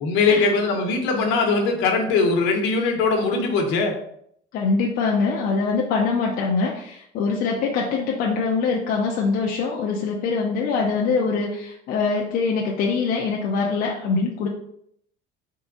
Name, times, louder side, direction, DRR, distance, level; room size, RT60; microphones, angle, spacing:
voice 1, 0.0-3.9, left 4 dB, 65° left, 2 dB, 1.1 m, -21 dB
voice 2, 4.5-14.5, left 4 dB, 45° left, -1 dB, 0.6 m, -23 dB
3.7 x 3.5 x 3.9 m, 0.70 s
cardioid pair, 160°, 21 cm